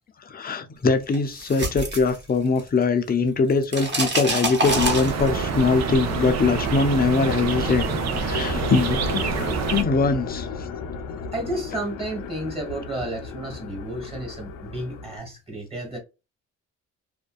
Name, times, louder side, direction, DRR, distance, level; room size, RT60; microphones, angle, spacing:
voice 1, 0.2-9.4 9.7-10.7 11.2-11.3, left 4 dB, 30° left, 0.6 m, -22 dB
sound 1, 1.1-2.8 3.1-5.5, right 2 dB, 35° right, 1.2 m, -26 dB
sound 2, 3.8-15.2, left 5 dB, 85° left, 0.5 m, -35 dB
sound 3, 4.6-9.8, right 5 dB, 60° right, 0.6 m, -27 dB
voice 2, 11.3-16.0, right 1 dB, 20° right, 1.5 m, -32 dB
2.5 x 2.2 x 2.2 m
cardioid pair, 90°, 30 cm